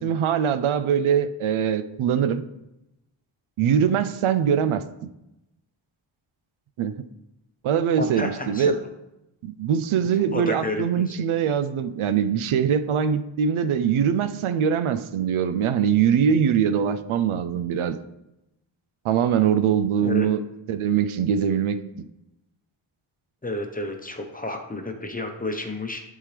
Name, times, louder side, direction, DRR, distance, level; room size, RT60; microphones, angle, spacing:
voice 1, 0.0-2.4 3.6-4.8 6.8-6.9 7.6-8.8 9.4-18.0 19.0-20.4 20.7-21.8, right 8 dB, 90° right, 12 dB, 0.6 m, -22 dB
voice 2, 8.0-8.7 10.1-11.2 20.0-20.3 23.4-26.0, left 2 dB, 20° left, 4 dB, 0.8 m, -31 dB
11.0 x 3.7 x 3.3 m, 0.90 s
wide cardioid pair, 125°, 48 cm